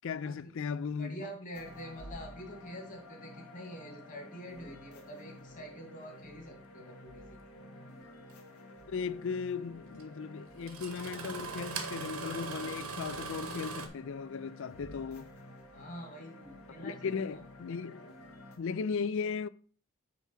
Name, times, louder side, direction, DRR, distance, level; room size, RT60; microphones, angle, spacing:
voice 1, 0.0-1.3 8.9-15.3 16.8-18.1 18.6-19.5, left 5 dB, 60° left, 0.4 m, -37 dB
voice 2, 1.0-7.4 15.7-17.4, equal, 35° left, 2.2 m, -46 dB
sound 1, 1.5-18.6, left 1 dB, 90° left, 1.6 m, -51 dB
Engine starting, 8.3-8.4 10.0-10.1 10.6-13.9, right 4 dB, 85° right, 1.3 m, -40 dB
9.3 x 3.4 x 5.7 m
head